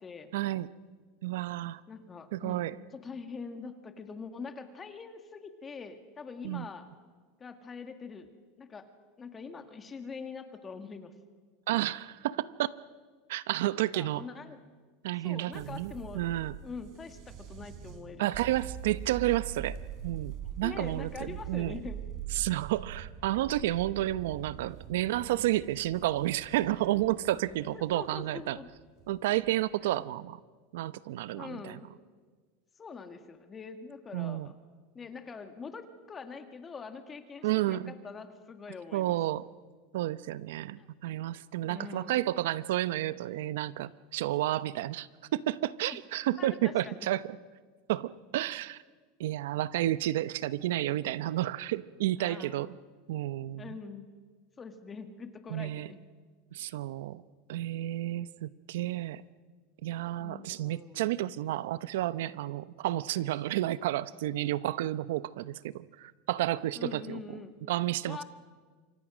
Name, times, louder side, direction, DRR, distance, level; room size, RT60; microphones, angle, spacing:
voice 1, 0.3-0.7 1.2-1.8 2.3-2.7 6.4-6.7 11.7-12.7 13.3-14.2 15.0-16.6 18.2-19.8 20.0-21.8 22.3-28.6 29.1-30.4 30.7-31.8 34.1-34.5 37.4-37.9 38.9-39.4 39.9-47.2 47.9-48.8 49.2-52.8 53.1-53.7 55.5-55.9 56.5-57.2 57.5-59.2 59.8-67.2 67.7-68.2, right 15 dB, 80° right, 16 dB, 0.8 m, -31 dB
voice 2, 1.9-2.7 2.9-6.9 7.4-8.3 8.6-8.9 9.2-11.1 13.7-14.6 15.2-16.2 16.6-18.3 20.6-22.0 27.7-28.7 29.8-30.1 31.3-31.9 32.8-34.6 34.9-39.2 40.8-40.9 41.6-42.2 45.8-46.0 46.4-47.1 52.2-52.7 53.6-54.1 54.6-56.0 60.2-61.1 66.8-67.6 68.0-68.2, left 5 dB, 20° left, 7 dB, 2.0 m, -44 dB
sound 1, 15.5-29.7, right 9 dB, 55° right, 3.6 m, -43 dB
28.0 x 24.5 x 6.3 m, 1.5 s
supercardioid pair, 125°, 0 cm